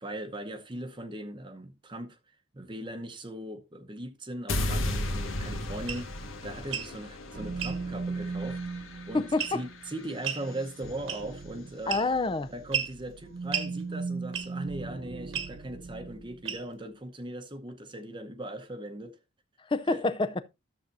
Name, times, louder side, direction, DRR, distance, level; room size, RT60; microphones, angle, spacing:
voice 1, 0.0-12.0 12.5-19.2 19.9-20.1, right 1 dB, 25° right, 0.8 m, -39 dB
sound 1, 4.5-10.6, left 1 dB, 85° left, 1.5 m, -35 dB
sound 2, 5.9-6.0 6.6-6.9 7.6-7.8 9.4-9.7 10.2-10.5 11.1-11.4 11.9-12.3 12.7-12.9 13.5-13.7 14.3-14.6 15.3-15.5 16.4-16.8, right 8 dB, 75° right, 1.5 m, -33 dB
sound 3, 7.3-16.5, right 4 dB, 50° right, 0.6 m, -39 dB
voice 2, 9.1-9.6 11.9-12.5 19.7-20.4, left 3 dB, 25° left, 0.4 m, -27 dB
13.0 x 7.3 x 2.6 m
head